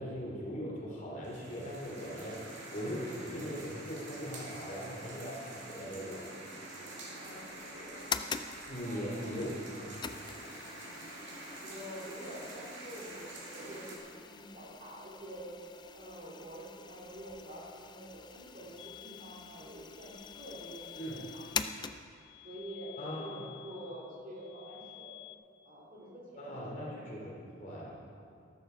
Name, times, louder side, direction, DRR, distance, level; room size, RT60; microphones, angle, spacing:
voice 1, 0.0-2.4 2.7-6.2 8.7-9.9 21.0-21.2 23.0-23.4 26.4-27.3 27.6-28.0, equal, 40° left, -4 dB, 3.2 m, -40 dB
sound 1, 1.2-14.0, right 1 dB, 65° right, 2.5 m, -47 dB
voice 2, 5.6-6.2 6.7-8.0 8.8-9.4 11.6-15.5 15.9-21.9 22.4-25.2 25.6-27.0 27.4-27.6, equal, 40° right, -5 dB, 2.9 m, -47 dB
sound 2, 7.2-22.4, left 6 dB, 20° left, 0.3 m, -44 dB
sound 3, 18.8-25.3, left 19 dB, 90° left, 0.8 m, -52 dB
13.5 x 13.0 x 4.6 m, 2.4 s
head